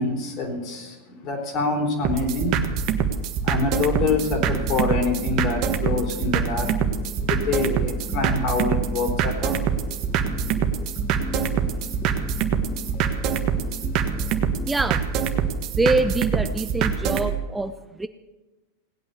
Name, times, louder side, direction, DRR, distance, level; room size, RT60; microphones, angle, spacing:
voice 1, 0.0-2.6 3.4-6.7 7.2-9.6 13.0-13.1 13.8-13.9 14.4-14.5, left 3 dB, 45° left, 3 dB, 3.9 m, -26 dB
sound 1, 2.0-17.3, right 7 dB, 45° right, 1.5 m, -25 dB
sound 2, 4.0-14.7, left 4 dB, 20° left, 1.2 m, -39 dB
voice 2, 14.7-15.0 15.8-18.1, right 2 dB, 10° right, 10 dB, 0.6 m, -25 dB
18.0 x 8.7 x 7.0 m, 1.1 s
hypercardioid pair, 105°, 0 cm